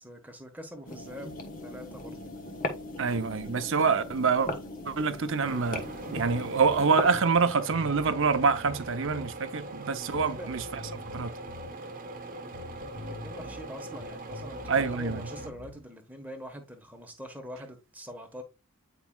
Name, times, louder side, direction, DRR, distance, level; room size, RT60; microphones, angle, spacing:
voice 1, 0.0-1.3 1.6-2.2 10.1-10.5 12.8-18.4, equal, 10° right, 1.3 m, -44 dB
sound 1, 0.9-7.2, left 1 dB, 35° left, 1.1 m, -38 dB
voice 2, 3.0-4.5 4.9-5.8 6.1-10.6 11.1-11.3 14.7-15.3, right 5 dB, 60° right, 0.7 m, -26 dB
sound 2, 5.4-15.5, right 2 dB, 40° right, 1.1 m, -41 dB
Bass guitar, 6.5-6.9 7.4-7.5 7.7-9.3 10.1-11.7 12.5-13.6 13.9-15.8, left 2 dB, 75° left, 2.1 m, -46 dB
9.2 x 4.9 x 2.3 m
head